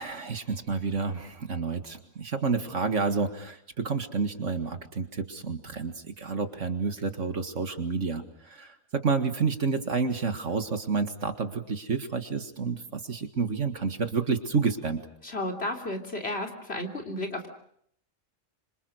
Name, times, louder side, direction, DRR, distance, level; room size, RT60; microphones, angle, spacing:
voice 1, 0.0-15.0, right 4 dB, 60° right, 8 dB, 2.2 m, -29 dB
voice 2, 15.2-17.5, left 1 dB, 45° left, 3 dB, 3.5 m, -33 dB
26.5 x 26.5 x 6.4 m, 0.69 s
omnidirectional pair, 1.4 m